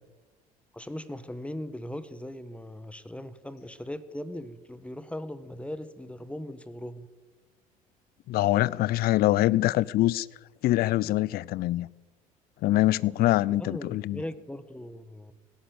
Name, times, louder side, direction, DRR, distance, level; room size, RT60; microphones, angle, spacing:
voice 1, 0.7-7.1 13.5-15.3, left 1 dB, 5° left, 1.4 m, -39 dB
voice 2, 8.3-10.3 10.6-11.9 12.6-14.2, left 16 dB, 55° left, 0.6 m, -24 dB
17.0 x 10.5 x 7.9 m
hypercardioid pair, 65°, 19 cm